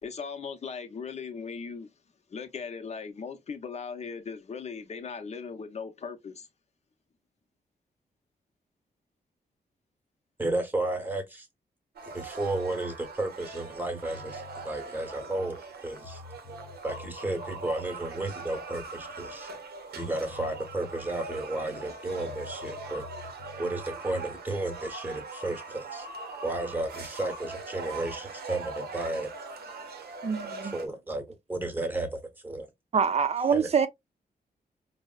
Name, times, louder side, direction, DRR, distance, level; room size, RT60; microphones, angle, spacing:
voice 1, 0.0-1.9 2.3-6.5, left 5 dB, 45° left, 0.7 m, -38 dB
voice 2, 10.4-11.5 12.1-16.2 16.8-19.5 19.9-23.0 23.6-26.1 26.4-29.3 30.6-31.2 31.5-32.7 33.5-33.7, right 2 dB, 10° right, 0.9 m, -33 dB
sound 1, 12.0-30.9, right 3 dB, 90° right, 0.7 m, -41 dB
sound 2, 14.1-14.7 15.7-15.8 16.0-17.7 19.9-20.0 20.3-20.9 22.2-23.9, left 7 dB, 85° left, 0.6 m, -48 dB
voice 3, 30.2-30.7 32.9-33.9, right 6 dB, 40° right, 0.5 m, -25 dB
4.5 x 2.0 x 2.3 m
wide cardioid pair, 105°, 16 cm